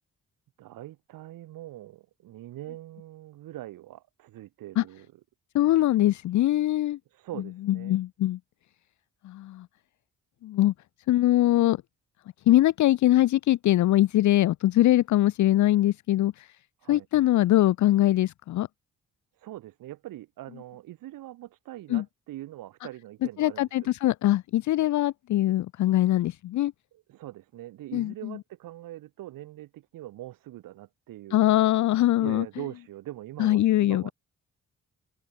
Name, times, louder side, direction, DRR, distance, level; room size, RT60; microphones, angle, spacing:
voice 1, 0.6-5.1 7.1-8.0 16.8-17.1 19.4-23.7 26.9-31.4 32.2-34.1, right 15 dB, 85° right, 2.9 m, -42 dB
voice 2, 5.5-7.0 7.7-8.4 9.2-9.7 10.4-10.7 11.1-11.8 12.5-16.5 16.9-18.7 21.9-22.0 23.4-26.7 27.9-28.4 31.3-32.4 33.4-34.1, left 14 dB, 60° left, 0.5 m, -22 dB
cardioid pair, 70°, 32 cm